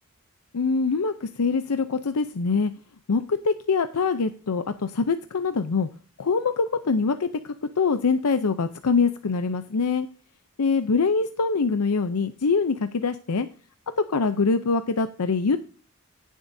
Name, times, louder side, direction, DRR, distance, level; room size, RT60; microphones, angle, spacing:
voice 1, 0.5-2.7 3.1-5.9 6.2-10.1 10.6-13.5 14.1-15.6, left 4 dB, 90° left, 10 dB, 0.6 m, -24 dB
17.0 x 7.3 x 2.7 m, 0.40 s
head